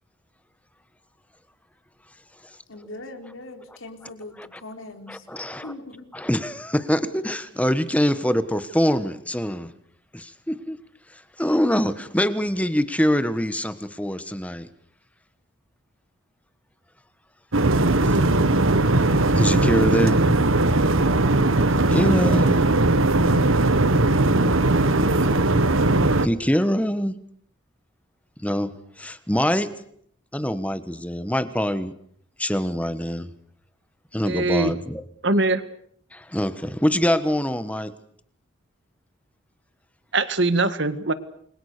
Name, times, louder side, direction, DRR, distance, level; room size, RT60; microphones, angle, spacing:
voice 1, 2.7-5.2 5.6-6.1, left 2 dB, 80° left, 5 dB, 3.9 m, -40 dB
voice 2, 5.1-5.7 6.1-9.7 10.1-10.8 11.1-14.7 18.1-18.2 19.0-20.3 21.9-22.6 26.2-27.1 28.4-29.7 30.3-31.9 32.4-33.3 34.1-35.0 36.1-37.9, equal, 5° left, 12 dB, 1.3 m, -24 dB
sound 1, 17.5-26.3, right 2 dB, 85° right, 1.5 m, -19 dB
voice 3, 34.2-34.7 35.2-35.6 40.1-41.1, right 2 dB, 60° right, 12 dB, 1.8 m, -22 dB
29.0 x 22.5 x 6.8 m, 0.65 s
head